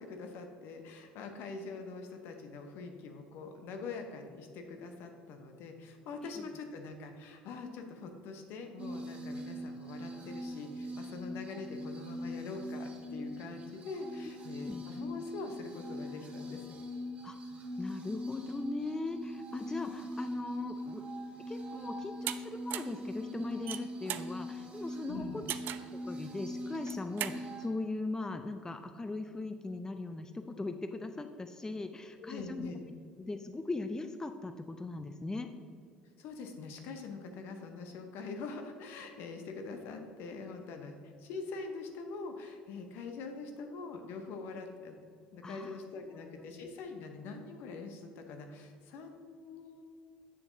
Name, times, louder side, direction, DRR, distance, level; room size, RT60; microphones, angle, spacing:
voice 1, 0.0-16.6 25.1-25.4 32.2-32.9 36.2-45.0 45.3-49.8, left 4 dB, 60° left, 5 dB, 0.9 m, -44 dB
sound 1, 8.8-27.7, equal, 30° right, 1.4 m, -42 dB
voice 2, 17.2-21.0 21.5-25.4 25.9-32.7 33.2-35.5 45.4-45.8 46.1-46.6, left 2 dB, 15° left, 8 dB, 0.4 m, -39 dB
sound 2, 22.3-22.4 22.7-23.0 23.5-24.3 25.5-25.9 26.7-27.4, right 12 dB, 55° right, 0.3 m, -37 dB
7.7 x 6.8 x 2.7 m, 2.3 s
hypercardioid pair, 65°, 4 cm